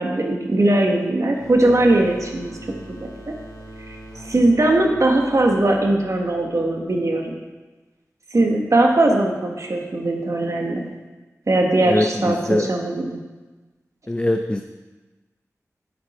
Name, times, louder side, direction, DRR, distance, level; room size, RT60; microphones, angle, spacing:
voice 1, 0.0-2.5 3.0-3.1 4.2-7.4 8.3-10.9 11.5-13.2, right 2 dB, 60° right, 1 dB, 1.5 m, -19 dB
sound 1, 1.3-6.8, right 1 dB, 80° left, 2.7 m, -41 dB
voice 2, 11.8-12.7 14.1-14.6, left 1 dB, 20° left, 6 dB, 0.5 m, -22 dB
10.5 x 7.9 x 4.4 m, 1.2 s
wide cardioid pair, 70°, 6 cm